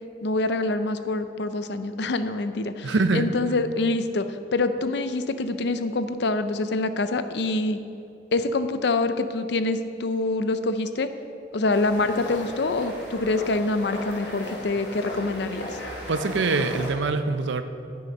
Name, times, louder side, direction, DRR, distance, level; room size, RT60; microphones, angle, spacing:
voice 1, 0.2-7.8 8.3-11.1 11.5-15.8, left 2 dB, 65° left, 10 dB, 0.5 m, -26 dB
voice 2, 2.8-3.3 16.1-17.6, right 3 dB, 85° right, 10 dB, 0.6 m, -24 dB
sound 1, 11.7-16.9, left 1 dB, 90° left, 2.9 m, -36 dB
9.6 x 9.3 x 5.3 m, 2.7 s
head